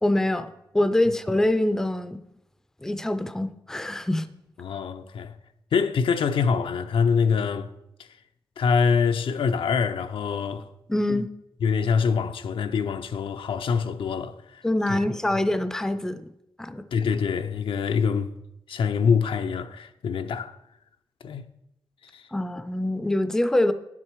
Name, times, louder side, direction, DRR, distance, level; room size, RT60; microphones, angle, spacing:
voice 1, 0.0-2.2 2.8-4.3 10.9-11.3 14.6-16.2 16.6-16.8 22.3-23.7, left 1 dB, 5° left, 0.4 m, -24 dB
voice 2, 4.6-5.3 5.7-7.7 8.6-10.7 11.6-14.6 14.9-15.0 16.9-18.3 18.7-20.6 21.2-21.5 22.1-22.2, left 6 dB, 85° left, 0.6 m, -25 dB
10.0 x 7.5 x 4.6 m
wide cardioid pair, 165°, 9 cm